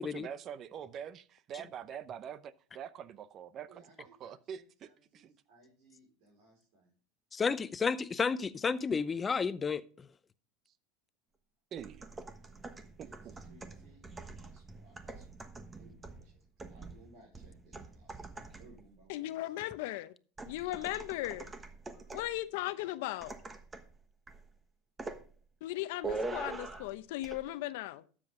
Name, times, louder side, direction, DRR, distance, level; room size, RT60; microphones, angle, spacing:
voice 1, 0.0-5.3 11.7-12.1 13.0-13.3, right 8 dB, 40° right, 0.7 m, -45 dB
voice 2, 3.7-6.9 13.0-15.3 15.7-19.5 21.8-22.2, right 2 dB, 60° right, 4.8 m, -62 dB
voice 3, 7.3-10.1, left 5 dB, 20° left, 0.6 m, -32 dB
sound 1, 11.8-18.9 20.4-22.4 23.2-23.9 24.3-24.5 25.0-25.3 26.0-26.9 27.2-27.4, right 3 dB, 15° right, 1.2 m, -44 dB
voice 4, 19.1-20.1 20.5-21.5 22.1-23.3 25.6-28.0, left 16 dB, 75° left, 0.7 m, -37 dB
12.5 x 7.6 x 3.7 m
supercardioid pair, 110°, 0 cm